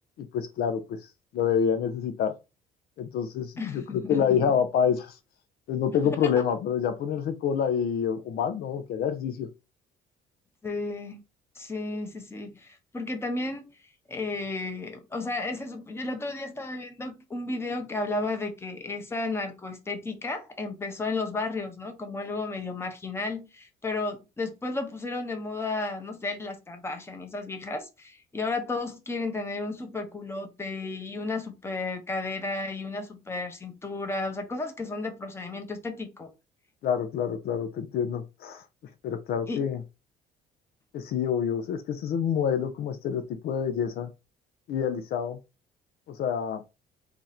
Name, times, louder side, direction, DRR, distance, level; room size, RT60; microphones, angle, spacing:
voice 1, 0.2-1.0 1.3-2.3 3.0-5.2 5.7-9.5 36.8-38.6 39.0-39.8 40.9-44.1 44.7-45.4 46.1-46.6, left 7 dB, 65° left, 0.6 m, -27 dB
voice 2, 3.6-4.4 6.0-6.3 10.6-11.2 11.6-13.6 14.1-36.3 39.5-39.6, left 3 dB, 15° left, 0.8 m, -33 dB
2.9 x 2.5 x 4.0 m
cardioid pair, 110°, 17 cm